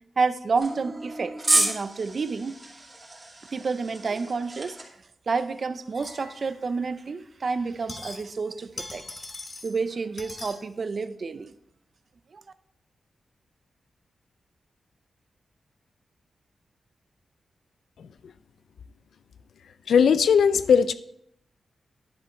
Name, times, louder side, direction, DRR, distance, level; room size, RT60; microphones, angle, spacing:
voice 1, 0.2-2.6 3.5-4.8 5.3-9.1 9.6-11.5, right 4 dB, 45° right, 12 dB, 0.6 m, -29 dB
sound 1, 0.6-4.8, right 2 dB, 30° right, 2.4 m, -30 dB
sound 2, 5.9-6.8 7.6-8.5 8.7-9.8 10.2-10.6, left 2 dB, 35° left, 1.4 m, -41 dB
voice 2, 19.9-20.9, left 7 dB, 85° left, 14 dB, 0.5 m, -18 dB
10.5 x 7.2 x 4.4 m, 0.73 s
wide cardioid pair, 125°, 0 cm